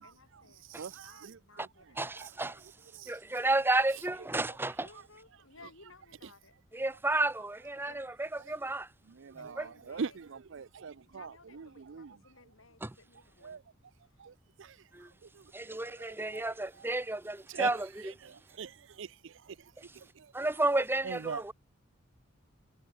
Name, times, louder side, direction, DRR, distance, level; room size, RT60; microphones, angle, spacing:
voice 1, 0.0-0.6 1.0-2.3 4.8-6.5 7.8-8.1 9.4-10.2 11.1-13.6 14.1-14.2, left 3 dB, 85° left, 5.8 m, -58 dB
voice 2, 0.8-1.3 9.2-9.5 9.9-11.3 11.9-12.1 13.4-13.6 14.2-14.3 16.3-16.5 17.5-17.7 18.6-18.7 19.0-19.1 21.1-21.4, right 5 dB, 65° right, 0.5 m, -39 dB
voice 3, 2.0-2.6 3.1-4.9 6.7-8.9 9.6-9.7 12.8-12.9 14.9-15.1 15.5-18.2 19.8-19.9 20.3-21.5, right 2 dB, 10° right, 0.8 m, -32 dB
head